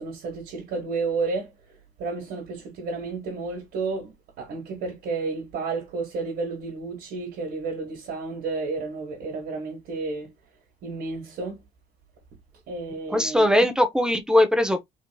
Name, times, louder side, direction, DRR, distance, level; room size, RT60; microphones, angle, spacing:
voice 1, 0.0-1.5 2.0-10.3 10.8-11.6 12.7-13.7, right 4 dB, 75° right, 1.4 m, -31 dB
voice 2, 13.1-14.8, left 1 dB, 5° right, 0.7 m, -20 dB
3.7 x 2.8 x 2.3 m
cardioid pair, 110°, 17 cm